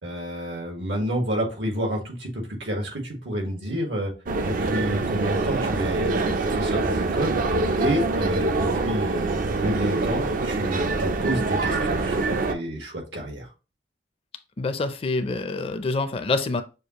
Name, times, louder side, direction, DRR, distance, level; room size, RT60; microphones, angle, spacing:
voice 1, 0.0-4.1 4.4-13.5, equal, 85° right, 1.7 m, -30 dB
sound 1, 4.3-12.5, right 3 dB, 50° right, 0.4 m, -25 dB
voice 2, 14.6-16.6, left 3 dB, 30° left, 0.4 m, -26 dB
6.5 x 2.3 x 2.9 m
head